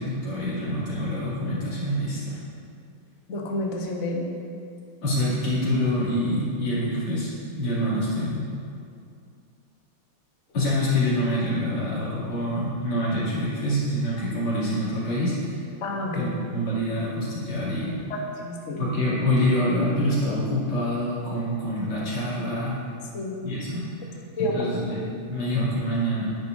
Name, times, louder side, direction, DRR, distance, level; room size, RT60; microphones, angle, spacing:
voice 1, 0.0-2.4 5.0-7.3 7.6-8.4 10.5-15.6 16.1-17.9 18.8-22.8 23.4-24.1 24.4-26.3, equal, 85° left, -9 dB, 3.4 m, -26 dB
voice 2, 3.3-4.3 15.8-16.4 18.1-18.8 23.1-23.3 24.4-24.5, left 1 dB, 50° left, 0 dB, 1.0 m, -29 dB
10.0 x 10.0 x 2.6 m, 2.4 s
omnidirectional pair, 2.3 m